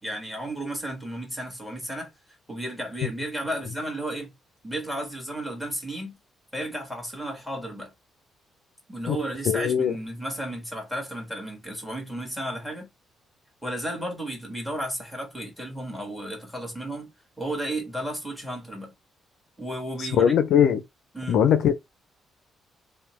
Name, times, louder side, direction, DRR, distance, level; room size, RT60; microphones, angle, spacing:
voice 1, 0.0-2.1 2.5-4.3 4.6-6.2 6.5-7.9 8.9-12.9 13.6-17.1 17.4-18.9 19.6-20.3 21.1-21.4, right 1 dB, 5° right, 1.4 m, -33 dB
voice 2, 9.5-10.0 20.0-20.8 21.3-21.8, left 8 dB, 75° left, 0.3 m, -20 dB
2.8 x 2.1 x 3.0 m
cardioid pair, 90°, 0 cm